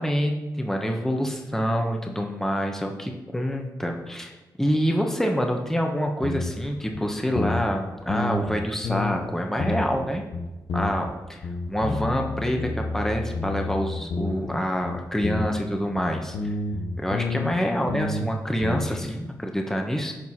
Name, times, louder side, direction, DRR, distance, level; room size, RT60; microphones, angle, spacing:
voice 1, 0.0-4.3 4.6-10.2 10.7-16.5 17.0-20.1, equal, 5° left, 3 dB, 1.2 m, -26 dB
sound 1, 6.2-6.7 6.9-7.0 7.3-7.8 8.1-9.3 9.6-10.1 10.3-11.1 11.4-14.6 14.8-17.6 17.9-18.3 18.6-19.1, left 3 dB, 90° left, 0.9 m, -30 dB
11.5 x 4.8 x 4.8 m, 1.1 s
cardioid pair, 60°, 8 cm